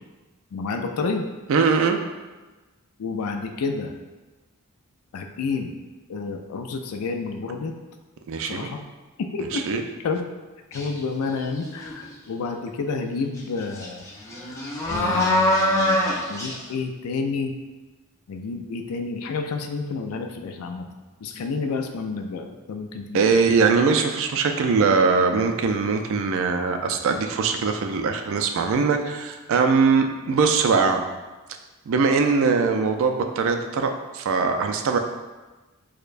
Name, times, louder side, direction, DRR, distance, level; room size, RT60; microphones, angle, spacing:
voice 1, 0.5-1.3 3.0-3.9 5.1-5.7 6.1-7.8 8.4-8.8 9.2-10.3 10.7-14.0 14.9-17.5 18.3-20.9 21.2-23.4, left 4 dB, 75° left, 4 dB, 0.4 m, -30 dB
voice 2, 1.5-2.0 8.3-8.7 9.5-9.8 23.1-31.1 31.9-35.0, right 5 dB, 60° right, 5 dB, 0.4 m, -21 dB
sound 1, 10.7-11.0 11.4-12.1 13.4-13.5 13.8-16.6, left 1 dB, 15° left, 0.5 m, -23 dB
6.4 x 2.2 x 2.5 m, 1.2 s
head